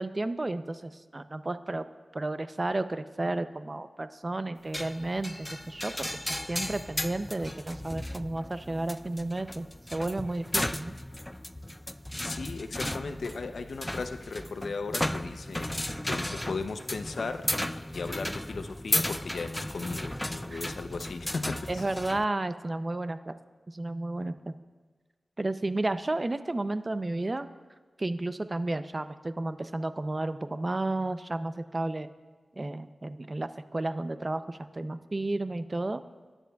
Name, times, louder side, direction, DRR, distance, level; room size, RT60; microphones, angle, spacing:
voice 1, 0.0-1.9 2.1-10.9 20.5-20.7 21.7-23.3 23.7-24.6 25.4-27.5 28.0-32.1 32.6-36.0, right 2 dB, 35° right, 11 dB, 0.6 m, -32 dB
sound 1, 4.7-22.2, left 1 dB, 15° left, 0.3 m, -35 dB
voice 2, 12.2-21.8, left 4 dB, 85° left, 9 dB, 0.6 m, -37 dB
20.0 x 9.8 x 2.3 m, 1.4 s
wide cardioid pair, 70°, 0 cm